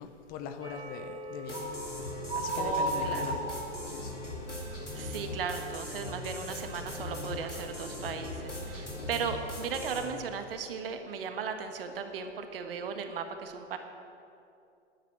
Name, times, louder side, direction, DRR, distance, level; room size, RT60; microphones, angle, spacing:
voice 1, 0.0-1.7 2.3-3.5 3.9-4.2, left 7 dB, 25° left, 7 dB, 0.8 m, -41 dB
sound 1, 0.6-6.4 6.7-7.0 7.4-7.6, right 2 dB, 10° right, 4.5 m, -37 dB
Infinite Meteor Rain, 1.4-10.1, left 2 dB, 90° left, 2.7 m, -40 dB
voice 2, 2.6-3.4 4.9-13.8, right 6 dB, 50° right, 7 dB, 1.5 m, -36 dB
12.5 x 10.5 x 8.3 m, 2.6 s
figure-of-eight pair, 105°, 35 cm